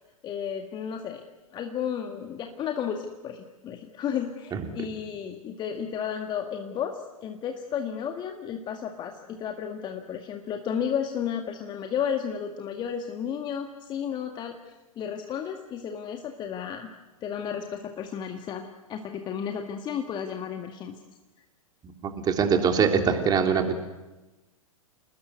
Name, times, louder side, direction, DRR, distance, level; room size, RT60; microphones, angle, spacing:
voice 1, 0.2-1.2 1.5-14.6 15.0-16.9 17.2-20.9, left 8 dB, 25° left, 4 dB, 1.9 m, -33 dB
voice 2, 22.0-23.8, right 6 dB, 20° right, 4 dB, 3.4 m, -23 dB
29.0 x 20.0 x 8.1 m, 1.1 s
figure-of-eight pair, 105°, 18 cm